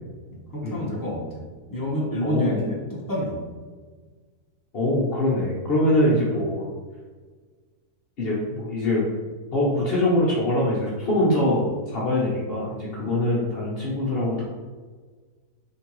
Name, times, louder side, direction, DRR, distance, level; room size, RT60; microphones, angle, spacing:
voice 1, 0.3-3.4, equal, 20° left, -5 dB, 0.6 m, -28 dB
voice 2, 2.2-2.6 4.7-6.7 8.2-9.1 9.5-11.6 11.9-14.5, left 1 dB, 50° left, -6 dB, 0.8 m, -23 dB
3.8 x 3.6 x 2.9 m, 1.4 s
omnidirectional pair, 1.6 m